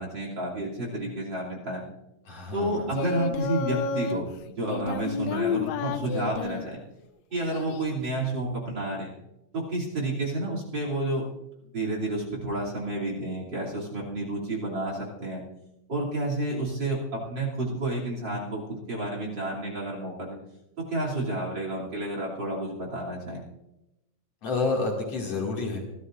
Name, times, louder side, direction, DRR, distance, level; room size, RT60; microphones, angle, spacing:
voice 1, 0.0-1.9 2.5-6.8 7.3-9.1 9.5-11.3 11.6-15.4 15.9-20.4 20.8-23.4, right 2 dB, 35° right, -2 dB, 3.4 m, -30 dB
voice 2, 2.3-2.9 24.4-25.8, left 3 dB, 55° left, -1 dB, 3.4 m, -29 dB
Singing, 2.9-4.2 4.7-6.7 7.5-8.1, left 6 dB, 75° left, 1.9 m, -31 dB
27.0 x 13.0 x 2.6 m, 0.91 s
omnidirectional pair, 3.4 m